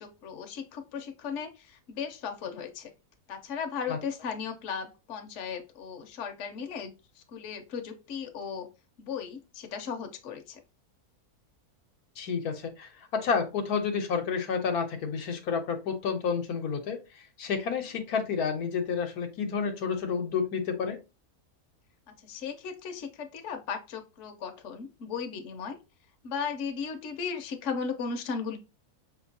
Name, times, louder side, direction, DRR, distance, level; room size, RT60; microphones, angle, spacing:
voice 1, 0.0-2.9 3.3-8.7 9.0-10.6 22.1-25.8 26.2-28.6, left 6 dB, 60° left, 5 dB, 1.0 m, -36 dB
voice 2, 12.2-21.0, left 6 dB, 80° left, 5 dB, 1.3 m, -30 dB
5.2 x 2.9 x 2.7 m, 0.27 s
omnidirectional pair, 1.6 m